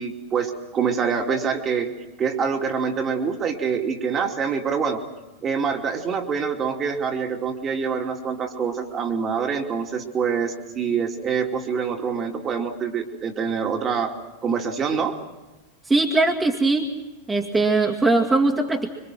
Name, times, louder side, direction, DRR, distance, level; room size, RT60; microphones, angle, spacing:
voice 1, 0.0-1.9 2.2-5.0 5.4-14.1 14.4-15.2, right 6 dB, 25° right, 4 dB, 2.7 m, -25 dB
voice 2, 15.9-16.9 17.3-18.9, right 3 dB, 10° right, 0 dB, 2.3 m, -20 dB
26.0 x 25.0 x 6.1 m, 1.1 s
figure-of-eight pair, 90°, 0 cm